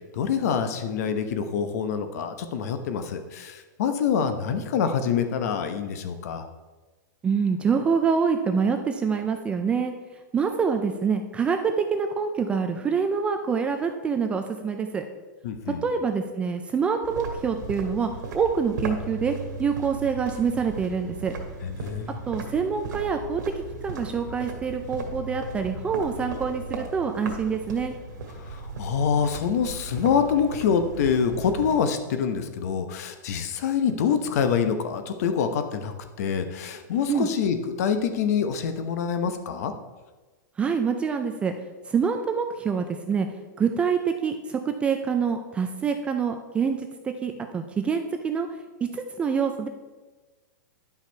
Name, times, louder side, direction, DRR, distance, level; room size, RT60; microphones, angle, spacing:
voice 1, 0.1-6.5 15.4-15.8 21.6-22.2 28.5-39.7, left 7 dB, 50° left, 9 dB, 0.9 m, -26 dB
voice 2, 7.2-9.9 10.3-15.0 15.8-21.3 22.3-23.4 23.8-27.9 37.1-37.3 40.6-41.5 41.9-43.3 43.6-48.5 48.9-49.7, right 6 dB, 10° right, 6 dB, 0.3 m, -26 dB
sound 1, 17.0-31.8, right 3 dB, 65° right, 1.8 m, -37 dB
10.5 x 5.7 x 4.5 m, 1.2 s
supercardioid pair, 160°, 10 cm